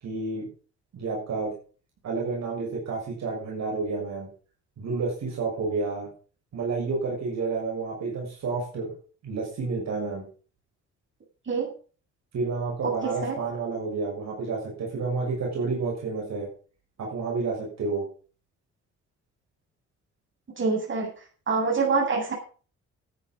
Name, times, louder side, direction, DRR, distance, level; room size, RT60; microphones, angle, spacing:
voice 1, 0.0-0.5 0.9-1.5 2.0-4.3 4.8-6.1 6.5-8.9 9.2-10.2 12.3-16.5 17.0-18.0, right 4 dB, 60° right, -2 dB, 6.7 m, -30 dB
voice 2, 12.8-13.4 20.6-21.1 21.5-22.3, right 4 dB, 40° right, -1 dB, 7.9 m, -25 dB
14.0 x 9.5 x 5.5 m, 0.39 s
cardioid pair, 90°, 30 cm